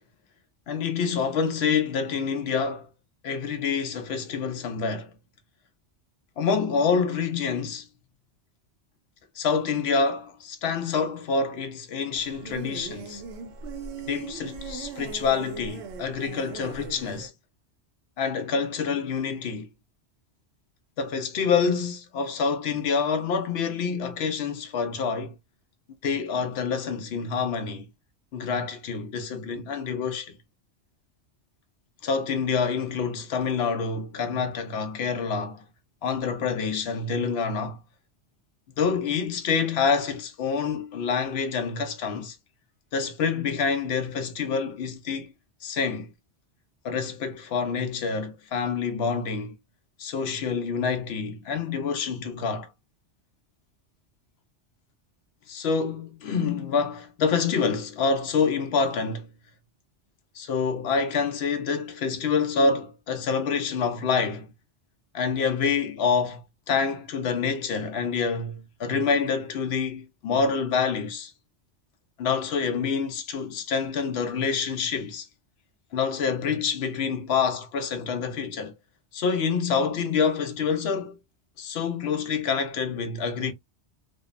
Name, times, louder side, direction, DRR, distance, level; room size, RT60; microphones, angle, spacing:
voice 1, 0.7-2.9 3.2-5.1 6.4-7.9 9.4-13.2 14.1-17.3 18.2-19.7 21.0-25.3 26.0-27.8 28.3-30.3 32.0-35.6 36.0-37.8 38.8-42.4 42.9-45.3 45.6-46.1 46.8-49.5 50.0-52.7 55.5-59.3 60.4-64.5 65.1-66.4 66.7-71.3 72.2-75.3 75.9-78.7 79.1-81.2 81.6-83.5, left 5 dB, 70° left, 0.8 m, -27 dB
sound 1, 12.1-17.3, right 5 dB, 75° right, 0.8 m, -39 dB
2.7 x 2.0 x 2.3 m
omnidirectional pair, 1.1 m